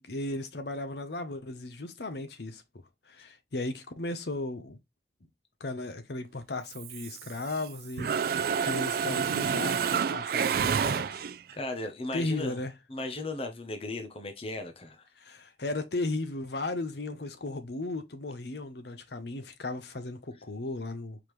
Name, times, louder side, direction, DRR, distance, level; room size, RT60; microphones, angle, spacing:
voice 1, 0.0-2.6 3.1-4.8 5.6-11.3 12.1-12.7 15.2-21.2, left 2 dB, 65° left, 0.8 m, -36 dB
Mechanisms, 6.7-7.7 8.0-11.5, right 7 dB, 50° right, 0.3 m, -29 dB
voice 2, 11.5-12.6 12.9-15.1, left 2 dB, 30° left, 0.7 m, -36 dB
4.8 x 3.6 x 3.1 m
head